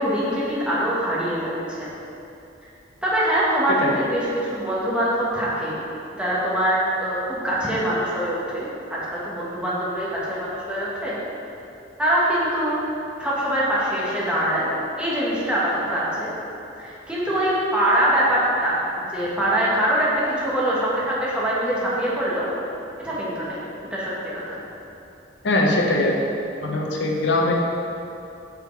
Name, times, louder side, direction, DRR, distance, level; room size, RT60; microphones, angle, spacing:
voice 1, 0.0-1.9 3.0-5.8 6.1-11.2 12.0-12.8 13.2-14.7 15.0-16.3 16.8-20.1 20.4-22.5 23.0-23.6 23.9-24.6, right 1 dB, 5° right, -8 dB, 1.4 m, -23 dB
voice 2, 25.4-26.2 26.6-27.5, left 2 dB, 65° left, -1 dB, 0.9 m, -21 dB
8.6 x 4.9 x 3.3 m, 2.7 s
head